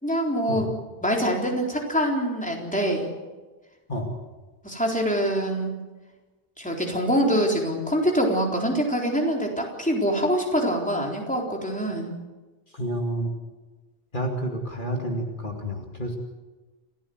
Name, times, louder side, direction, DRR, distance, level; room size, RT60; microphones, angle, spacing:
voice 1, 0.0-0.7 1.0-3.1 4.6-5.7 6.6-12.1, equal, 5° left, 0 dB, 4.0 m, -24 dB
voice 2, 12.7-13.3 14.1-16.2, right 1 dB, 50° left, 1 dB, 2.6 m, -29 dB
28.5 x 15.0 x 8.0 m, 1.2 s
omnidirectional pair, 1.1 m